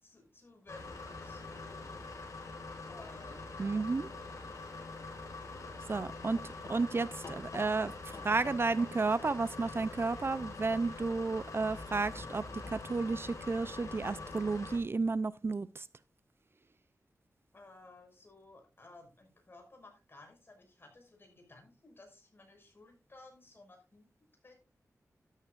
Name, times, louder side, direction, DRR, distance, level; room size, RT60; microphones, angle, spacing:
voice 1, 0.0-2.0 2.9-3.9 4.2-4.5 4.9-5.1 17.5-24.1 24.4-24.5, left 2 dB, 40° left, 3 dB, 5.9 m, -56 dB
sound 1, 0.7-14.8, left 3 dB, 70° left, 4.8 m, -44 dB
voice 2, 3.6-4.1 5.9-6.4 6.7-12.4 12.7-15.8, right 3 dB, 45° right, 16 dB, 0.5 m, -32 dB
13.0 x 12.5 x 2.5 m, 0.28 s
wide cardioid pair, 100°, 6 cm